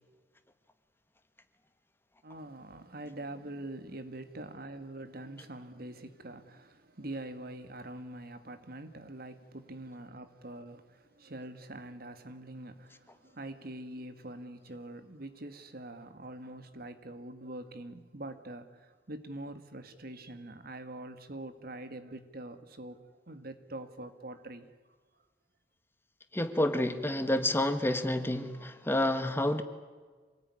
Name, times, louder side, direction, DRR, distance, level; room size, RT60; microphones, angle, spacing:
voice 1, 2.2-23.0 23.3-24.7, right 1 dB, 55° right, 1.9 m, -44 dB
voice 2, 26.3-29.6, left 1 dB, 15° left, 1.4 m, -29 dB
26.5 x 19.0 x 9.8 m
head